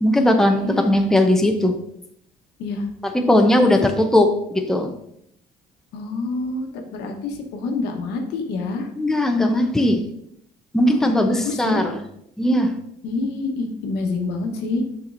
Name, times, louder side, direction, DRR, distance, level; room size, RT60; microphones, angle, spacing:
voice 1, 0.0-1.8 3.3-4.9 9.0-10.0 10.7-11.9 12.4-12.7, left 1 dB, 5° left, 4 dB, 0.7 m, -18 dB
voice 2, 3.6-4.0 5.9-8.9 10.8-11.9 13.0-14.8, left 3 dB, 90° left, 3 dB, 1.1 m, -27 dB
6.9 x 5.9 x 2.6 m, 0.74 s
cardioid pair, 110°, 17 cm